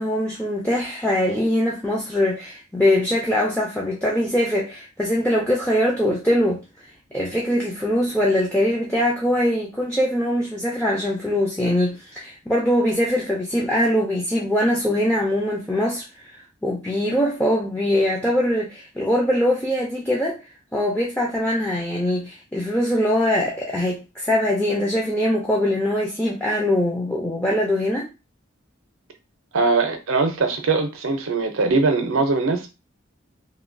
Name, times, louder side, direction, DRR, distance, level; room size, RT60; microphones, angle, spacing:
voice 1, 0.0-6.6 7.1-20.4 20.7-28.1, left 1 dB, 10° left, 0.4 m, -22 dB
voice 2, 29.5-32.7, right 3 dB, 85° right, 0.6 m, -21 dB
2.9 x 2.2 x 2.5 m
head